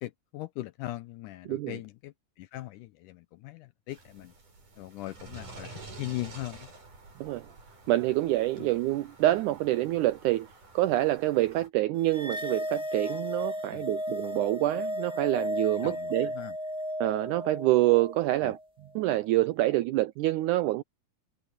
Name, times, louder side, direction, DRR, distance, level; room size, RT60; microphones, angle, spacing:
voice 1, 0.0-4.3 4.8-6.7 8.6-8.7 13.7-13.9 15.8-16.6 18.4-18.5, left 17 dB, 80° left, 1.9 m, -40 dB
voice 2, 1.5-1.8 7.2-7.5 7.9-10.5 10.8-16.3 17.0-18.6 19.0-20.8, right 16 dB, 90° right, 1.8 m, -26 dB
sound 1, 3.9-11.7, right 3 dB, 60° right, 9.5 m, -49 dB
sound 2, 12.1-18.6, equal, 5° right, 0.8 m, -34 dB
omnidirectional pair, 4.2 m